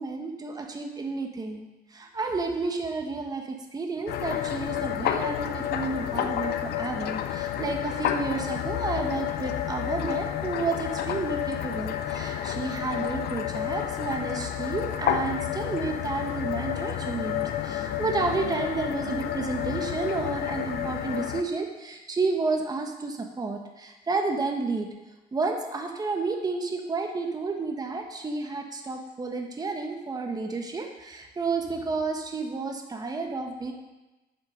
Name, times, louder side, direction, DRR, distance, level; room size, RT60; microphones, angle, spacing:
voice 1, 0.0-24.9 25.3-33.7, right 3 dB, 20° right, 3 dB, 1.4 m, -31 dB
sound 1, 4.1-21.4, left 11 dB, 70° left, 0.8 m, -30 dB
9.0 x 7.5 x 6.4 m, 1.1 s
cardioid pair, 110°, 17 cm